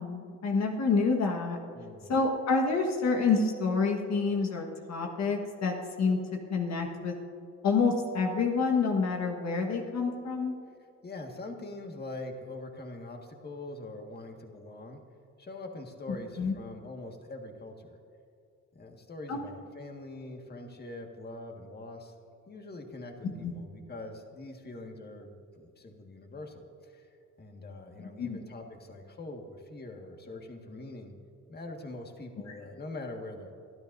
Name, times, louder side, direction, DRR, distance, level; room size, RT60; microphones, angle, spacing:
voice 1, 0.0-1.6 2.1-7.2 7.6-10.6 16.1-16.5 19.3-19.4 23.4-23.5 28.0-28.4, left 4 dB, 60° left, 2 dB, 1.6 m, -28 dB
voice 2, 1.7-2.1 10.7-10.8 11.0-15.0 15.4-18.0 18.7-22.1 22.5-27.1 27.4-31.1 31.5-33.5, left 2 dB, 35° left, 3 dB, 1.8 m, -43 dB
24.0 x 12.5 x 2.7 m, 2.5 s
cardioid pair, 90°, 30 cm